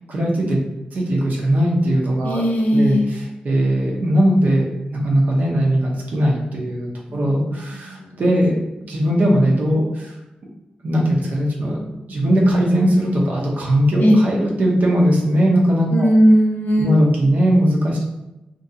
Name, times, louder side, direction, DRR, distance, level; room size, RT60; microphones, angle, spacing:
voice 1, 0.1-0.6 0.9-2.4 2.7-8.6 8.9-10.2 10.8-11.8 12.1-16.1 16.8-18.0, equal, 65° right, -2 dB, 0.5 m, -19 dB
voice 2, 2.2-3.1 7.1-8.2 14.0-14.2 15.9-16.9, equal, 75° left, 1 dB, 0.4 m, -18 dB
2.5 x 2.3 x 2.6 m, 0.95 s
wide cardioid pair, 165°, 3 cm